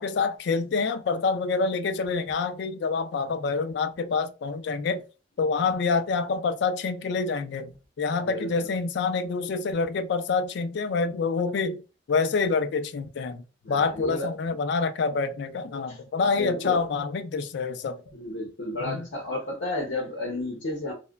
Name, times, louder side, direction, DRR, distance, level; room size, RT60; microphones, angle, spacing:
voice 1, 0.0-5.0 5.4-11.8 12.1-18.0 18.8-19.1, left 4 dB, 65° left, 0.3 m, -27 dB
voice 2, 8.2-8.7 13.6-14.3 15.9-16.0 16.3-16.8 18.1-20.9, left 1 dB, 85° left, 0.8 m, -32 dB
2.9 x 2.1 x 2.2 m
head